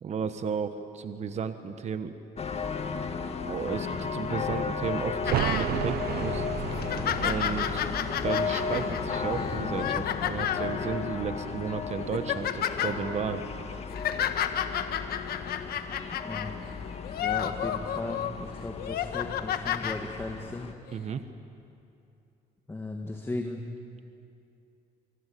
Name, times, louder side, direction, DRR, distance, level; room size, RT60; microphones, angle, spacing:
voice 1, 0.0-2.1 3.4-6.5 7.2-7.9 8.2-13.4 20.9-21.2, right 6 dB, 40° right, 9 dB, 1.2 m, -33 dB
sound 1, 2.4-20.7, left 5 dB, 40° left, 1.8 m, -34 dB
sound 2, 5.2-10.8 11.0-11.1, right 13 dB, 65° right, 0.7 m, -35 dB
sound 3, 5.3-5.7 6.2-6.3 6.7-10.7 11.4-11.6 12.0-12.9 13.7-16.5 17.0-18.3 18.8-20.0 20.9-21.0, left 10 dB, 65° left, 1.5 m, -31 dB
voice 2, 16.2-16.8 17.2-20.7 22.7-23.6, left 2 dB, 15° left, 3 dB, 1.8 m, -37 dB
25.0 x 24.0 x 8.5 m, 2.7 s
cardioid pair, 110°, 17 cm